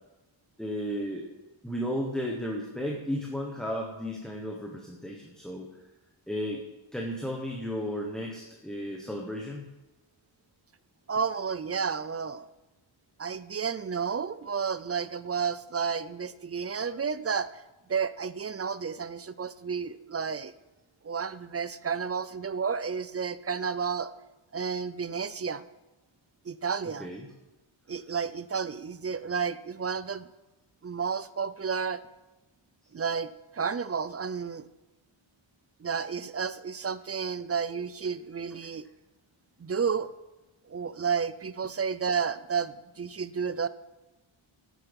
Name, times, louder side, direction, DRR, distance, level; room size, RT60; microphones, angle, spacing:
voice 1, 0.6-1.3 1.6-5.7 6.3-6.6 6.9-9.6 27.0-27.3, equal, ahead, 0 dB, 1.2 m, -34 dB
voice 2, 11.1-12.5 13.2-17.6 17.9-20.5 21.0-24.1 24.5-25.7 26.4-27.1 27.9-30.3 30.8-32.0 32.9-34.7 35.8-38.9 39.6-40.1 40.7-43.7, right 6 dB, 30° right, 15 dB, 0.4 m, -31 dB
11.5 x 8.1 x 5.3 m, 1.0 s
wide cardioid pair, 125°, 49 cm